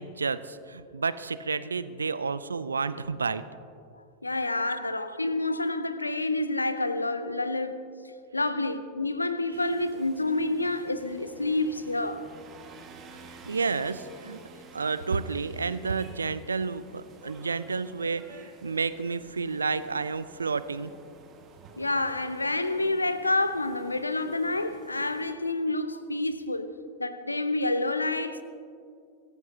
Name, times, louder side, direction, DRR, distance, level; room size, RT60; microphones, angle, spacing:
voice 1, 0.0-3.5 13.5-14.4 14.7-20.9, right 4 dB, 75° right, 0.5 m, -30 dB
voice 2, 3.9-7.8 8.3-12.3 21.8-28.4, left 2 dB, 80° left, 0.7 m, -28 dB
sound 1, 9.5-25.3, right 4 dB, 30° right, 1.8 m, -51 dB
23.0 x 15.5 x 2.8 m
figure-of-eight pair, 90°, 0 cm